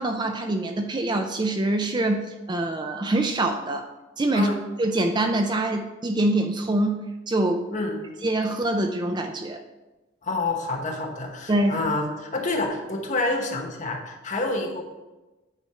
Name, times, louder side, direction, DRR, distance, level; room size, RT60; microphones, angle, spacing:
voice 1, 0.0-3.9 4.2-4.5 4.8-7.7 8.2-9.6 11.5-11.8, right 1 dB, 20° right, 5 dB, 0.4 m, -24 dB
voice 2, 7.7-8.0 10.2-14.8, left 2 dB, 35° left, 2 dB, 1.0 m, -28 dB
9.0 x 3.5 x 5.4 m, 1.1 s
head